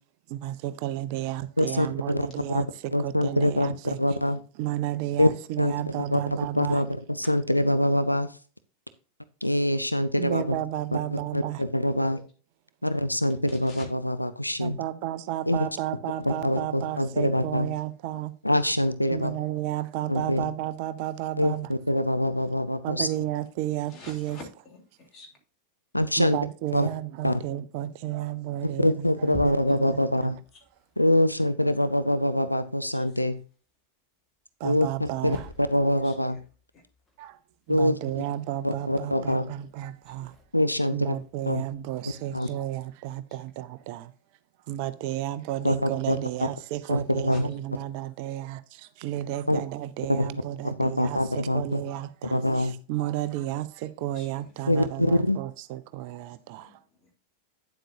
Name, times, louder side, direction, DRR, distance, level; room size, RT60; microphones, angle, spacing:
voice 1, 0.3-4.0 4.6-6.8 10.2-11.7 14.6-18.4 19.1-21.7 22.8-24.4 26.2-30.3 34.6-35.5 37.2-37.4 37.7-40.4 40.9-44.1 44.7-56.8, right 13 dB, 45° right, 0.5 m, -32 dB
voice 2, 1.6-2.6 2.9-4.4 5.2-5.3 5.6-5.7 6.1-6.2 6.6-8.3 9.4-10.6 11.1-12.2 12.8-14.8 15.5-15.6 16.3-17.7 18.4-19.3 20.1-20.4 21.4-23.1 25.9-26.4 26.7-26.9 27.2-27.4 28.6-30.4 31.0-33.4 34.6-35.4 35.7-36.4 37.7-38.2 38.6-39.5 40.5-41.2 41.5-41.6 42.3-42.5 45.6-46.2 46.9-47.5 49.5-49.6 50.1-50.3 50.6-51.8 52.3-52.7 54.7-55.4, left 1 dB, 90° left, 0.5 m, -24 dB
voice 3, 13.5-13.9 23.9-25.3 30.1-30.3 32.4-32.5 32.9-33.2 36.0-36.4 36.7-36.8 40.1-40.2 42.2-42.5 47.3-47.4 54.1-54.3 56.6-57.1, left 2 dB, 30° left, 3.3 m, -49 dB
sound 1, 28.8-33.1 34.8-42.3, left 1 dB, 10° left, 1.8 m, -49 dB
9.4 x 7.5 x 2.7 m
figure-of-eight pair, 90°, 0 cm